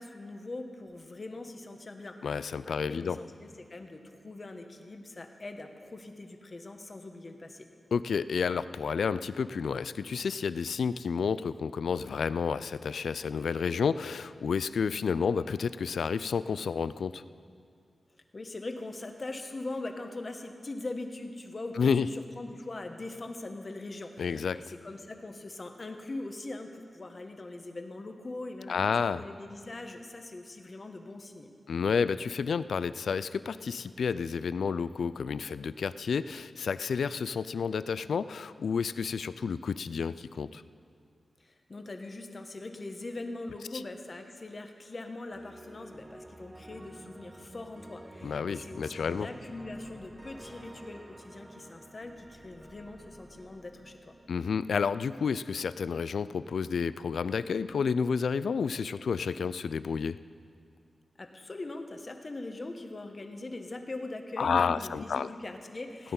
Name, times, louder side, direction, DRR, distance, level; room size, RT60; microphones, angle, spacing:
voice 1, 0.0-7.7 18.3-31.5 41.4-54.1 61.2-66.1, left 2 dB, 35° left, 5 dB, 1.1 m, -42 dB
voice 2, 2.2-3.2 7.9-17.2 21.8-22.1 24.2-24.6 28.7-29.2 31.7-40.6 48.2-49.3 54.3-60.2 64.4-65.3, left 6 dB, 85° left, 15 dB, 0.3 m, -30 dB
sound 1, 45.3-55.4, right 1 dB, 20° right, 0.4 m, -50 dB
17.0 x 10.0 x 5.4 m, 2.2 s
wide cardioid pair, 105°, 0 cm